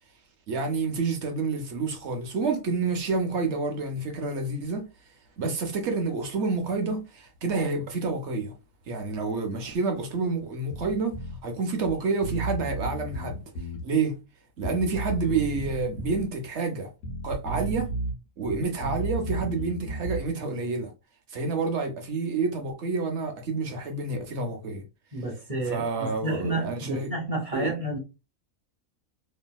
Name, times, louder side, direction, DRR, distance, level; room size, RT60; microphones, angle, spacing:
voice 1, 0.5-4.8 5.4-8.5 8.9-11.2 11.4-13.4 13.8-14.2 14.6-16.9 17.2-17.9 18.4-20.9 21.3-24.8 25.7-27.1 27.5-27.8, right 4 dB, 60° right, 0.9 m, -28 dB
Bass guitar, 10.7-11.4 11.9-12.0 12.2-13.8 14.6-16.2 17.0-18.1 18.4-20.3, right 2 dB, 90° left, 1.3 m, -33 dB
voice 2, 25.1-28.0, right 1 dB, 30° right, 0.8 m, -30 dB
3.1 x 2.6 x 2.2 m
omnidirectional pair, 1.5 m